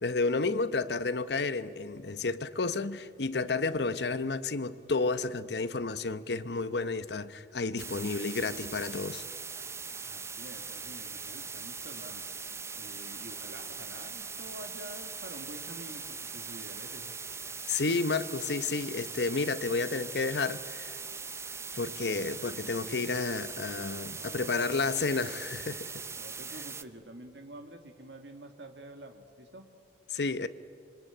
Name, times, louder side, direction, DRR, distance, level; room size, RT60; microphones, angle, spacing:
voice 1, 0.0-9.2 17.7-21.0 21.7-26.0 30.1-30.5, left 3 dB, 65° left, 0.9 m, -31 dB
sound 1, 7.8-26.8, right 5 dB, 15° right, 0.7 m, -41 dB
voice 2, 10.0-12.3 12.8-17.2 24.1-25.4 26.2-29.7, right 1 dB, 75° right, 2.0 m, -48 dB
26.5 x 23.0 x 9.0 m
head